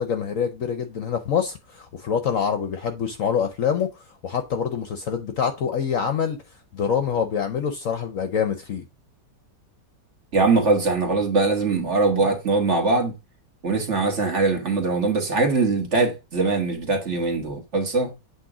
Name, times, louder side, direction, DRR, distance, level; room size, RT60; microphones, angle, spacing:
voice 1, 0.0-6.4 6.7-8.8, left 7 dB, 60° left, 1.0 m, -25 dB
voice 2, 10.3-13.1 13.6-18.1, right 3 dB, 45° right, 1.7 m, -22 dB
8.2 x 3.0 x 4.8 m
omnidirectional pair, 1.9 m